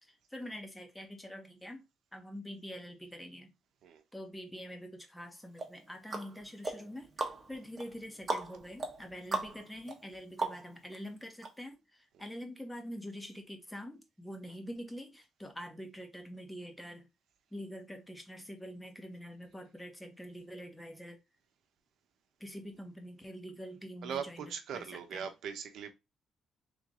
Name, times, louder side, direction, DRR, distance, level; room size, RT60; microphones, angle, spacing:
voice 1, 0.3-1.8 2.1-3.5 4.1-17.0 17.5-21.2 22.4-24.4 24.7-25.3, equal, 10° left, 1.3 m, -45 dB
sound 1, 5.6-11.0 11.4-11.5, right 3 dB, 35° right, 1.2 m, -39 dB
voice 2, 24.0-25.9, right 7 dB, 75° right, 0.8 m, -40 dB
3.5 x 3.2 x 3.8 m
cardioid pair, 90°, 0 cm